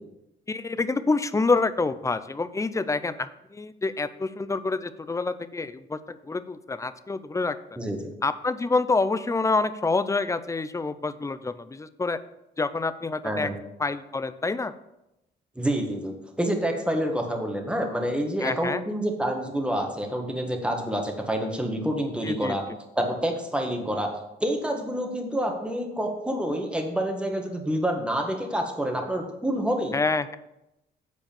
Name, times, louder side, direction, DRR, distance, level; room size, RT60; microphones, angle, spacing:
voice 1, 0.5-7.6 8.2-12.2 12.6-13.5 13.8-14.7 18.4-18.8 22.2-22.6 29.9-30.4, left 3 dB, 15° left, 13 dB, 0.5 m, -27 dB
voice 2, 7.8-8.1 13.2-13.6 15.5-22.6 22.9-24.1 24.4-30.0, equal, 5° right, 2 dB, 1.7 m, -28 dB
8.0 x 4.9 x 7.1 m, 0.90 s
cardioid pair, 90°, 20 cm